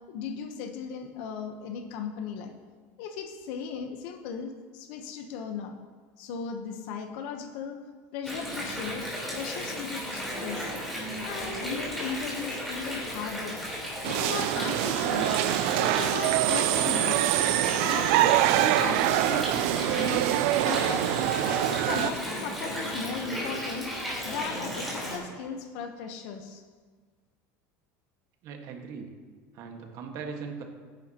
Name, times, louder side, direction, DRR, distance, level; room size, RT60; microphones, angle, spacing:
voice 1, 0.1-2.5 3.0-5.8 6.2-7.8 8.1-10.7 11.2-13.6 14.0-15.4 15.8-17.2 17.8-18.2 18.6-20.2 20.6-21.2 21.4-23.9 24.2-26.6, left 6 dB, 65° left, 5 dB, 1.0 m, -37 dB
Water, 8.2-25.2, equal, ahead, 4.0 m, -35 dB
sound 1, 14.0-22.1, right 14 dB, 70° right, 0.5 m, -25 dB
voice 2, 28.4-29.1 29.5-30.6, right 5 dB, 50° right, 3 dB, 1.6 m, -39 dB
16.0 x 10.5 x 2.9 m, 1.5 s
cardioid pair, 150°, 8 cm